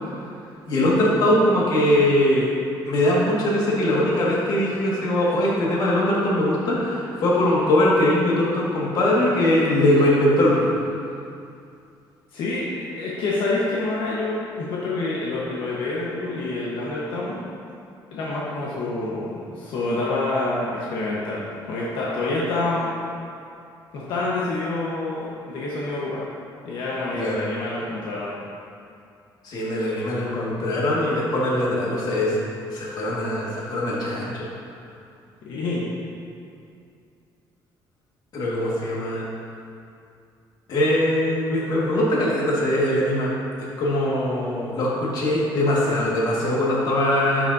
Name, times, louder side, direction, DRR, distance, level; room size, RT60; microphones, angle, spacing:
voice 1, 0.7-2.5 2.8-10.7 27.1-27.5 29.4-32.4 32.7-34.5 38.3-39.2 40.7-43.3 43.8-47.5, left 1 dB, 55° left, -5 dB, 1.8 m, -21 dB
voice 2, 12.3-17.4 18.1-21.4 21.7-22.9 23.9-26.2 26.6-28.3 35.4-35.8, left 2 dB, 80° left, -6 dB, 1.2 m, -27 dB
10.0 x 6.1 x 2.7 m, 2.5 s
cardioid pair, 150°, 8 cm